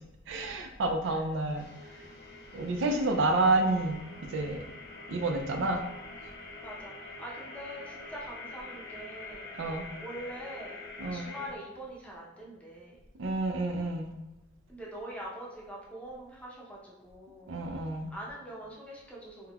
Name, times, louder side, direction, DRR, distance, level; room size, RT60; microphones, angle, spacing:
voice 1, 0.3-1.7 2.5-4.0 4.3-4.6 5.1-5.8 9.6-9.8 11.0-11.3 13.2-14.1 17.5-18.1, right 2 dB, 65° right, 5 dB, 0.4 m, -29 dB
sound 1, 1.6-11.5, left 2 dB, 55° left, 0.7 m, -45 dB
voice 2, 6.6-9.5 10.0-10.8 11.1-13.0 14.7-17.5 18.1-19.5, right 1 dB, 5° left, -4 dB, 0.7 m, -43 dB
3.6 x 2.8 x 2.3 m, 1.0 s
head